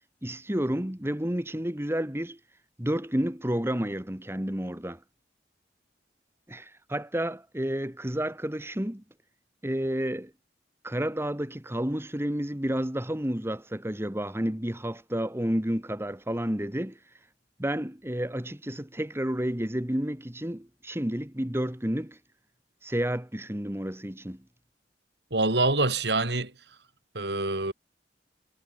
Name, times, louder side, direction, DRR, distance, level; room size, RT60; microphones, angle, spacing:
voice 1, 0.2-2.4 2.8-5.0 6.5-9.0 9.6-10.3 10.8-17.0 17.6-22.2 22.8-24.4, equal, 15° right, 1.8 m, -30 dB
voice 2, 25.3-26.5 27.1-27.7, right 2 dB, 65° right, 5.0 m, -25 dB
head